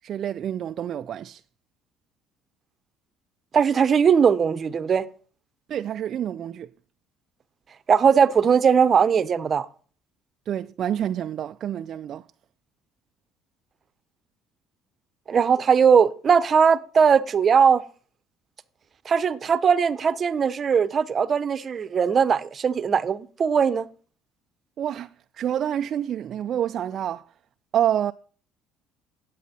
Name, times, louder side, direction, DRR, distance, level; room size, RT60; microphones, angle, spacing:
voice 1, 0.0-1.4 5.7-6.7 10.5-12.2 24.8-25.1 25.3-27.2 27.7-28.1, right 10 dB, 50° right, 0.4 m, -27 dB
voice 2, 3.5-5.1 7.9-9.7 15.3-17.8 19.0-23.9, right 6 dB, 35° right, 0.8 m, -19 dB
9.6 x 8.4 x 4.2 m
cardioid pair, 105°, 0 cm